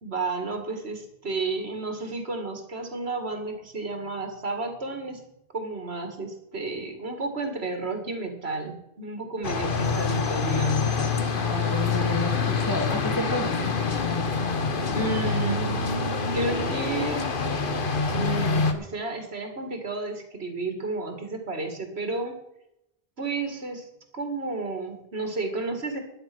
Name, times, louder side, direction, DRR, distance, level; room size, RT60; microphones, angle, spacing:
voice 1, 0.0-5.2 5.5-11.1 14.9-15.7 16.3-17.3 18.0-22.4 23.2-23.9 24.1-26.0, right 3 dB, 80° right, 6 dB, 2.4 m, -32 dB
sound 1, 9.4-18.7, left 4 dB, 55° left, 1.3 m, -26 dB
voice 2, 11.3-13.7, equal, 20° left, 0 dB, 3.2 m, -31 dB
12.0 x 9.9 x 6.1 m, 0.84 s
omnidirectional pair, 1.1 m